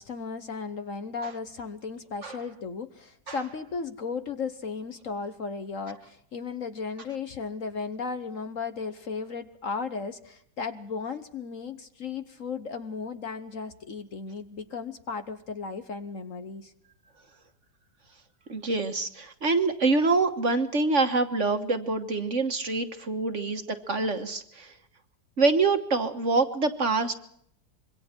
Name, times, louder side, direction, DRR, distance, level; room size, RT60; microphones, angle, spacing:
voice 1, 0.0-16.7, left 5 dB, 50° left, 10 dB, 1.3 m, -35 dB
voice 2, 18.5-24.7 25.4-27.1, right 3 dB, 45° right, 8 dB, 1.6 m, -25 dB
26.0 x 23.0 x 4.5 m, 0.67 s
omnidirectional pair, 1.9 m